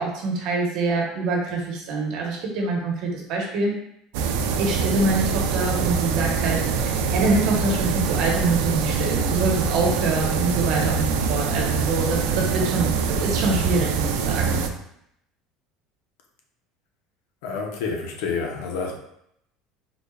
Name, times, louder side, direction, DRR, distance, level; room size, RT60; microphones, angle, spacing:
voice 1, 0.0-3.8 4.6-14.6, right 3 dB, 50° right, 0 dB, 0.9 m, -25 dB
sound 1, 4.1-14.7, right 5 dB, 85° right, 0.4 m, -24 dB
voice 2, 17.4-18.9, left 5 dB, 85° left, 1 dB, 0.8 m, -28 dB
3.9 x 3.3 x 2.3 m, 0.74 s
cardioid pair, 175°, 0 cm